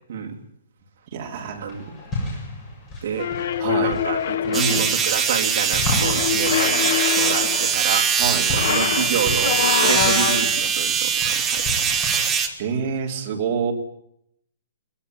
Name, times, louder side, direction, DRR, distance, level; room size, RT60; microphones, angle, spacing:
voice 1, 1.1-1.7 2.2-2.4 3.6-3.9 4.5-4.9 8.2-8.5 12.6-13.7, right 6 dB, 25° right, 0 dB, 3.5 m, -26 dB
sound 1, 1.5-12.3, left 2 dB, 10° left, 7.2 m, -34 dB
sound 2, 3.2-5.0 6.0-7.8 8.4-10.7, left 10 dB, 45° left, 1.2 m, -25 dB
voice 2, 3.8-8.1 8.5-11.9, right 7 dB, 45° right, 3 dB, 3.2 m, -28 dB
sound 3, 4.5-12.5, right 7 dB, 10° right, 1.5 m, -22 dB
21.5 x 19.5 x 9.5 m, 0.75 s
hypercardioid pair, 180°, 0 cm